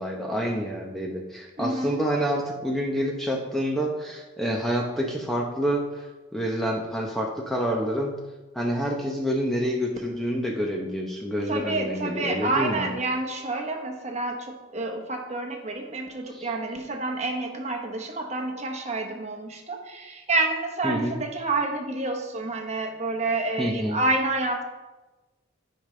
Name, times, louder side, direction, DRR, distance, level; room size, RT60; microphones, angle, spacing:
voice 1, 0.0-6.1 6.3-8.2 8.5-12.9 16.3-16.5 20.8-21.2 23.6-24.0, equal, ahead, -2 dB, 0.7 m, -28 dB
voice 2, 1.6-2.0 11.5-24.6, right 2 dB, 35° right, 3 dB, 1.0 m, -28 dB
15.0 x 5.2 x 3.2 m, 1.1 s
head